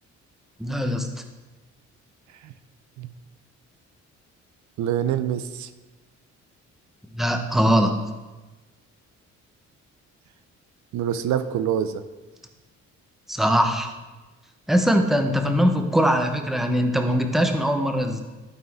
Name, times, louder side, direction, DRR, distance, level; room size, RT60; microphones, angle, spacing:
voice 1, 0.6-1.1 7.1-8.0 13.3-13.9 14.7-18.2, equal, ahead, 5 dB, 0.8 m, -21 dB
voice 2, 4.8-5.7 10.9-12.0, right 9 dB, 70° right, 12 dB, 0.5 m, -25 dB
12.5 x 4.2 x 3.5 m, 1.2 s
cardioid pair, 90°, 30 cm